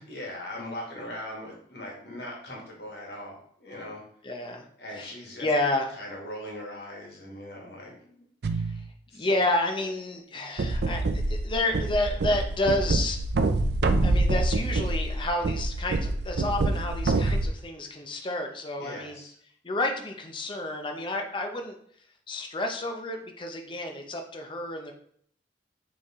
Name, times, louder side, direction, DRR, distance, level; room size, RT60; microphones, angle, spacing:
voice 1, 0.1-4.0 4.8-5.5 6.0-8.2 9.1-9.3 18.8-19.3, left 1 dB, 60° left, -2 dB, 1.5 m, -40 dB
voice 2, 4.2-4.7 4.9-5.1 5.4-5.9 9.1-13.2 14.0-19.2 19.6-21.7 22.3-24.9, left 2 dB, 25° left, 4 dB, 0.6 m, -30 dB
sound 1, 8.4-8.9 10.6-17.5, right 2 dB, 65° right, 0.4 m, -26 dB
4.5 x 3.3 x 3.5 m, 0.63 s
head